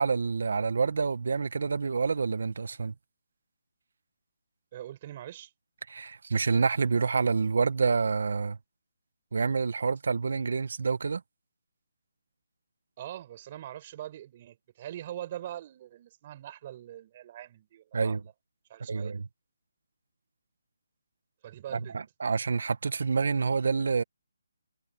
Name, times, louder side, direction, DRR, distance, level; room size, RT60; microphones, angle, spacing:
voice 1, 0.0-2.9 5.9-8.6 9.3-11.2 17.9-18.2 18.9-19.3 21.7-24.0, right 5 dB, 65° right, 1.4 m, -27 dB
voice 2, 4.7-5.5 13.0-18.3 18.7-19.1 21.4-22.0, right 12 dB, 30° right, 5.8 m, -42 dB
hypercardioid pair, 165°, 0 cm